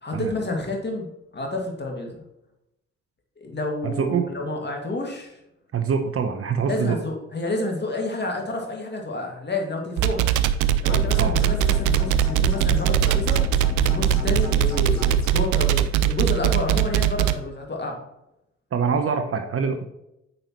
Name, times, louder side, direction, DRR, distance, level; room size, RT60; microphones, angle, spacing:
voice 1, 0.0-2.2 3.4-5.4 6.6-10.3 10.8-13.4 13.8-18.0, left 2 dB, 30° left, 1 dB, 2.2 m, -29 dB
voice 2, 3.8-4.3 5.7-7.0 11.2-11.3 18.7-19.9, right 6 dB, 40° right, 6 dB, 0.9 m, -24 dB
sound 1, 10.0-17.3, right 12 dB, 55° right, 0.5 m, -20 dB
sound 2, 10.9-15.3, left 3 dB, 50° left, 2.0 m, -29 dB
8.7 x 5.4 x 3.1 m, 0.83 s
figure-of-eight pair, 40°, 35 cm